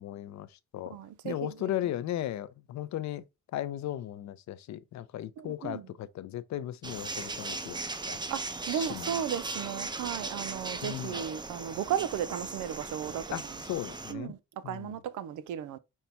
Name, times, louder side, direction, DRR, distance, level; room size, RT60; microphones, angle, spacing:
voice 1, 0.0-1.0 1.2-3.2 3.5-7.8 8.1-8.2 8.7-9.2 10.8-11.2 13.3-14.3 14.6-15.0, left 12 dB, 65° left, 0.5 m, -36 dB
voice 2, 0.9-1.7 5.4-5.9 8.3-13.4 14.1-14.4 14.6-15.8, right 9 dB, 80° right, 0.6 m, -35 dB
sound 1, 6.8-14.1, right 3 dB, 15° right, 0.5 m, -38 dB
5.4 x 2.2 x 4.3 m
cardioid pair, 90°, 30 cm